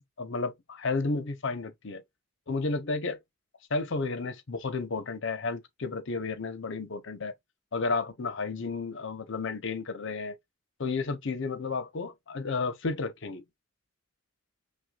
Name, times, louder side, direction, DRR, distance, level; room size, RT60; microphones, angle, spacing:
voice 1, 0.2-2.0 2.5-3.2 3.7-7.3 7.7-10.4 10.8-13.4, left 3 dB, 65° left, 0.8 m, -32 dB
6.2 x 2.3 x 2.3 m
head